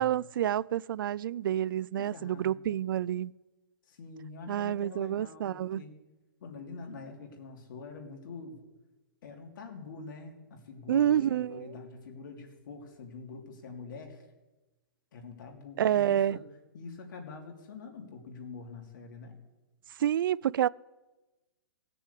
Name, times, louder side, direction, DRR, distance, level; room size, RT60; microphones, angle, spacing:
voice 1, 0.0-3.3 4.5-5.8 10.9-11.7 15.8-16.4 20.0-20.7, right 11 dB, 65° right, 0.4 m, -28 dB
voice 2, 1.9-2.6 3.9-5.9 6.4-8.6 9.2-14.2 15.1-16.4 16.7-19.4, left 4 dB, 60° left, 3.2 m, -45 dB
17.5 x 6.9 x 8.4 m
hypercardioid pair, 165°, 12 cm